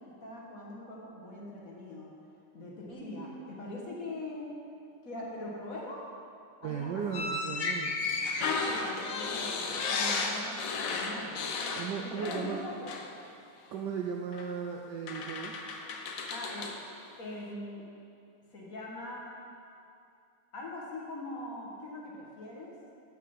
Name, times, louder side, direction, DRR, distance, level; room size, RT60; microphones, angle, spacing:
voice 1, 0.0-2.1 2.5-4.5 5.0-6.0 6.6-7.1 8.5-11.5 12.0-12.9 16.3-16.7 17.2-17.8 18.5-19.3 20.5-22.7, left 1 dB, 45° left, -3 dB, 1.5 m, -42 dB
voice 2, 6.6-8.0 11.8-12.7 13.7-15.6, right 6 dB, 75° right, 2 dB, 1.0 m, -36 dB
sound 1, 7.1-12.6 12.9-13.1 14.3-14.5 15.1-16.8, left 4 dB, 65° left, 0.9 m, -34 dB
8.2 x 5.7 x 7.0 m, 2.5 s
omnidirectional pair, 2.3 m